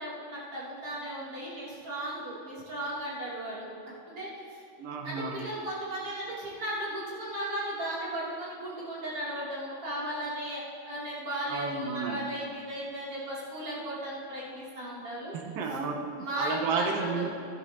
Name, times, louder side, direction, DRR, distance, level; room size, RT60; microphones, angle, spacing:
voice 1, 0.0-3.7 4.1-4.6 5.0-15.3 16.2-17.3, right 1 dB, 40° right, -8 dB, 4.0 m, -36 dB
voice 2, 4.8-5.3 11.5-12.2 15.3-17.3, right 4 dB, 75° right, 2 dB, 2.9 m, -32 dB
16.0 x 14.0 x 3.0 m, 2.6 s
omnidirectional pair, 4.2 m